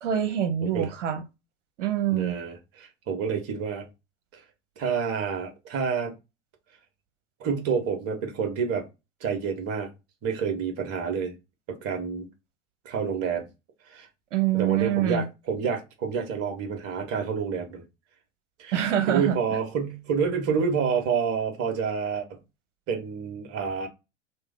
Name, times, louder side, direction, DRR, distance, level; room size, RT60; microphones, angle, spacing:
voice 1, 0.0-1.2 1.8-2.4 14.3-15.3 18.7-19.4, right 10 dB, 70° right, 0.9 m, -25 dB
voice 2, 2.1-3.9 4.3-4.4 4.8-6.1 7.4-8.8 9.2-9.9 10.2-11.3 11.7-12.3 12.8-13.5 13.9-14.1 14.5-17.8 18.6-18.8 19.1-22.4 22.9-23.9, right 6 dB, 40° right, 1.2 m, -28 dB
3.2 x 2.1 x 3.5 m
hypercardioid pair, 90°, 38 cm